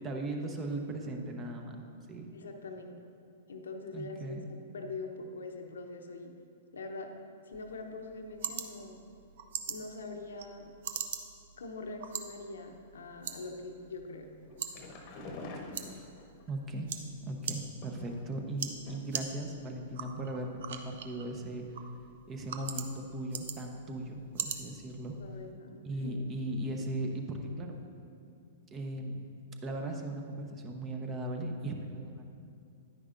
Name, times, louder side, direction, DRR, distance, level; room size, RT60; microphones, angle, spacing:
voice 1, 0.0-1.8 2.1-2.3 3.9-4.4 15.9-16.1 16.5-16.9 17.2-21.6 22.3-25.1 25.8-27.7 28.7-29.2 29.6-32.3, right 1 dB, 25° right, 3 dB, 0.9 m, -38 dB
voice 2, 2.3-3.0 3.5-6.3 6.7-7.1 7.5-9.0 9.7-10.7 11.6-14.3 25.2-26.2, left 3 dB, 70° left, 4 dB, 0.8 m, -43 dB
sound 1, 7.5-25.5, right 7 dB, 55° right, 0.6 m, -43 dB
sound 2, 14.4-16.5 17.5-18.4 18.8-19.3 19.5-19.6 20.0-20.1, left 2 dB, 35° left, 1.0 m, -46 dB
9.9 x 9.8 x 2.6 m, 2.4 s
figure-of-eight pair, 105°, 0 cm